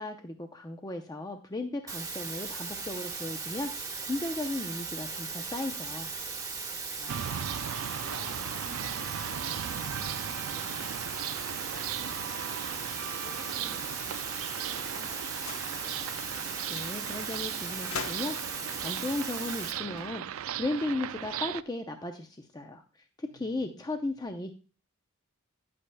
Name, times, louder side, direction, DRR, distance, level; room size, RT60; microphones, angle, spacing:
voice 1, 0.0-3.7 4.1-6.1 16.7-22.8 23.2-24.5, left 2 dB, 20° left, 5 dB, 0.6 m, -36 dB
sound 1, 1.9-19.7, right 4 dB, 15° right, 1.2 m, -38 dB
voice 2, 6.6-12.6 13.2-16.3 23.3-23.8 24.1-24.3, left 1 dB, 70° left, 2 dB, 2.9 m, -54 dB
sound 2, 7.1-21.6, right 9 dB, 70° right, 0.3 m, -37 dB
sound 3, 15.3-15.8 16.3-16.5 16.7-16.9 17.9-18.5 19.8-20.8, left 5 dB, 85° left, 1.0 m, -41 dB
10.0 x 8.6 x 2.2 m, 0.36 s
head